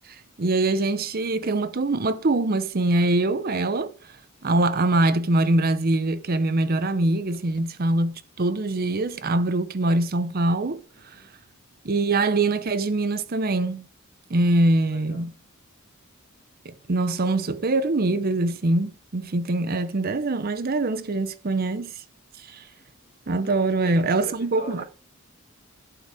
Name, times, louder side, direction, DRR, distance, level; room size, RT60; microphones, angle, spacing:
voice 1, 0.1-3.9 4.4-10.8 11.8-13.8 14.3-15.3 16.6-21.9 22.5-22.6 23.3-24.8, right 2 dB, 45° right, 0.7 m, -23 dB
voice 2, 10.9-11.3 14.5-15.3 19.7-19.8 23.4-24.8, left 2 dB, 45° left, 2.0 m, -45 dB
11.5 x 4.7 x 4.8 m
head